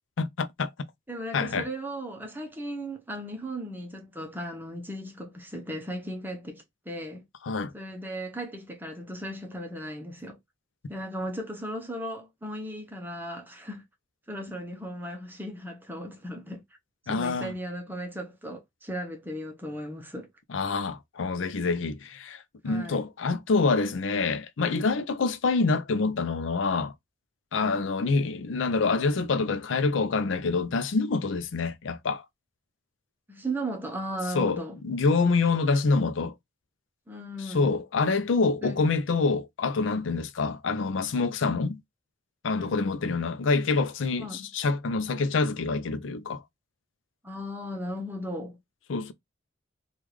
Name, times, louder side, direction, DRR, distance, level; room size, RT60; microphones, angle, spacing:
voice 1, 0.2-0.7 1.3-1.7 7.4-7.7 17.1-17.5 20.5-26.9 27.5-32.2 34.3-34.6 34.8-36.3 37.5-41.8 42.4-46.4 48.9-49.1, left 4 dB, 85° left, 0.5 m, -26 dB
voice 2, 1.1-7.3 7.7-10.4 10.9-13.8 14.3-16.6 17.1-20.3 22.6-23.1 27.5-28.0 33.3-34.8 37.1-37.8 38.6-38.8 42.5-43.0 44.2-44.5 47.2-48.6, equal, 10° right, 0.7 m, -36 dB
3.5 x 2.4 x 3.1 m
head